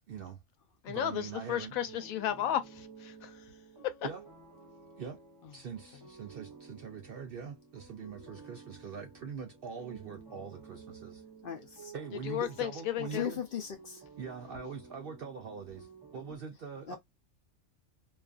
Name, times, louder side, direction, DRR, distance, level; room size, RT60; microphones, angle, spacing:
voice 1, 0.1-0.4 0.9-1.8 4.0-4.2 5.0-5.2 5.5-11.2 11.9-13.4 14.2-15.9 16.1-17.0, right 6 dB, 65° right, 0.5 m, -43 dB
voice 2, 0.8-3.3 8.2-8.4 12.2-13.3, left 11 dB, 85° left, 1.0 m, -34 dB
sound 1, 1.8-16.4, right 5 dB, 20° right, 0.7 m, -53 dB
voice 3, 11.4-11.9 13.1-14.0 16.9-17.0, left 9 dB, 60° left, 0.6 m, -38 dB
2.5 x 2.4 x 2.3 m
omnidirectional pair, 1.4 m